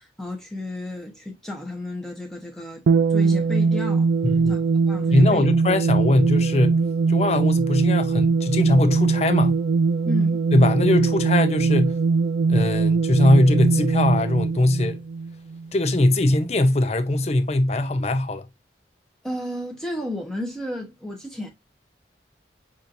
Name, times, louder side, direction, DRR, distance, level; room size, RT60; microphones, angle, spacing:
voice 1, 0.0-2.8 3.1-4.1 4.5-5.5 10.1-10.4 19.2-21.5, left 1 dB, 5° left, 1.0 m, -33 dB
sound 1, 2.9-15.7, right 4 dB, 80° right, 0.4 m, -21 dB
voice 2, 4.2-4.6 5.1-6.8 7.1-9.5 10.5-11.9 12.5-15.0 15.7-18.4, left 1 dB, 35° left, 0.6 m, -20 dB
6.2 x 2.7 x 2.6 m
head